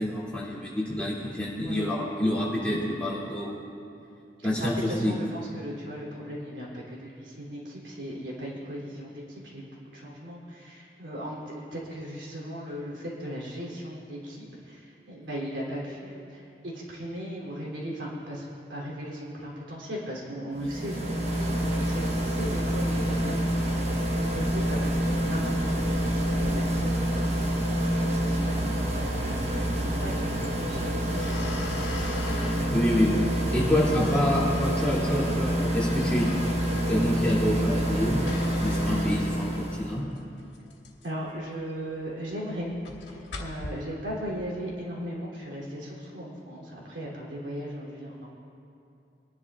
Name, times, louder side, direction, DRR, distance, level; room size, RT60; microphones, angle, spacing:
voice 1, 0.0-3.6 4.4-5.1 32.7-33.2 33.5-36.4 36.9-38.2 38.6-40.0, left 1 dB, 5° left, -8 dB, 2.7 m, -27 dB
voice 2, 1.6-2.0 4.6-23.8 24.1-31.6 41.0-42.7 43.1-48.3, equal, 85° right, -5 dB, 3.2 m, -37 dB
sound 1, 20.5-39.9, right 1 dB, 40° right, 1.2 m, -27 dB
sound 2, 30.4-43.7, left 3 dB, 85° left, 1.6 m, -43 dB
23.0 x 11.0 x 2.5 m, 2.6 s
head